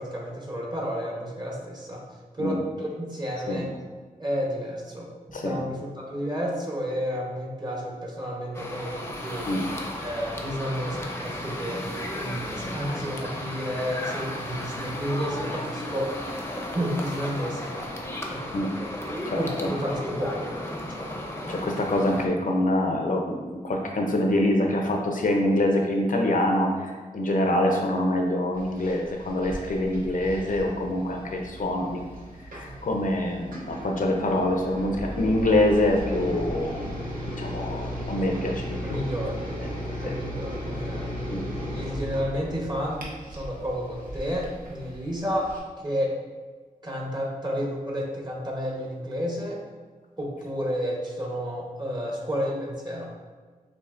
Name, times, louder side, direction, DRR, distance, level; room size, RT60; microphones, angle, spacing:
voice 1, 0.0-2.0 2.3-3.7 4.2-9.5 10.0-11.8 12.1-16.2 16.7-17.9 18.3-18.9 19.3-20.6 20.8-21.2 38.8-39.4 40.0-41.2 41.7-45.5 45.8-46.2 46.8-49.6 50.2-53.1, equal, 30° right, -2 dB, 1.0 m, -31 dB
sound 1, 8.5-22.3, left 1 dB, 15° left, 0.6 m, -34 dB
voice 2, 19.3-19.7 21.5-32.0 32.5-36.9 37.4-39.0 39.4-39.7 40.1-40.2 41.3-41.4, left 1 dB, 70° left, 1 dB, 0.6 m, -25 dB
sound 2, 28.5-45.6, equal, 75° right, 0.9 m, -36 dB
6.9 x 2.7 x 2.5 m, 1.4 s
wide cardioid pair, 80°, 15 cm